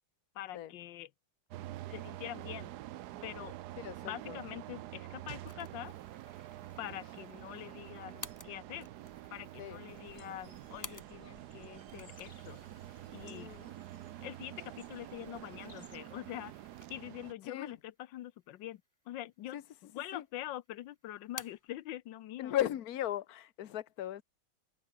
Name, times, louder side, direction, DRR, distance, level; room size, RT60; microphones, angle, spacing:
voice 1, 0.3-1.1 1.9-2.7 3.2-3.6 4.0-5.9 6.8-8.9 9.3-12.6 13.1-13.5 14.2-16.5 16.9-18.8 19.1-22.6, left 13 dB, 85° left, 1.5 m, -44 dB
sound 1, 1.5-17.3, right 14 dB, 70° right, 1.1 m, -47 dB
sound 2, 5.5-11.5 11.8-17.3 17.7-17.8 18.6-19.3 19.6-20.4 20.6-21.8, left 2 dB, 10° left, 1.3 m, -54 dB
sound 3, 9.9-16.0, left 5 dB, 30° left, 1.4 m, -62 dB
voice 2, 13.2-13.7 17.4-17.7 19.5-19.6 20.1-20.2 22.4-24.2, left 12 dB, 60° left, 1.4 m, -37 dB
omnidirectional pair, 2.0 m